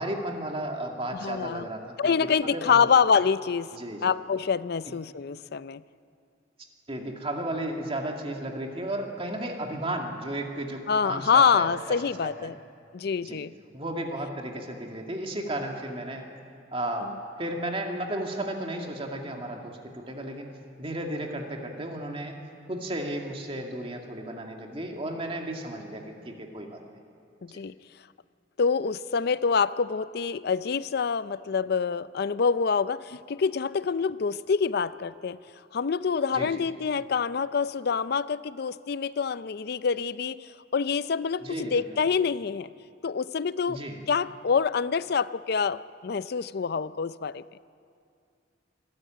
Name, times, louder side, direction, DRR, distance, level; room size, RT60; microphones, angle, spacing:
voice 1, 0.0-2.9 3.7-4.0 6.9-11.8 12.2-12.5 13.2-13.4 13.7-16.2 16.7-20.5 20.8-22.4 22.7-26.8 27.5-27.6 36.3-36.6 41.4-41.8 43.7-44.0, right 1 dB, 30° right, 2 dB, 2.3 m, -34 dB
voice 2, 1.1-1.7 2.0-3.7 4.0-5.8 10.9-12.6 12.9-13.5 17.0-17.1 27.4-27.7 28.6-35.4 35.7-42.7 43.0-43.8 44.1-47.4, left 6 dB, 60° left, 16 dB, 0.5 m, -26 dB
25.0 x 14.0 x 9.1 m, 2.4 s
head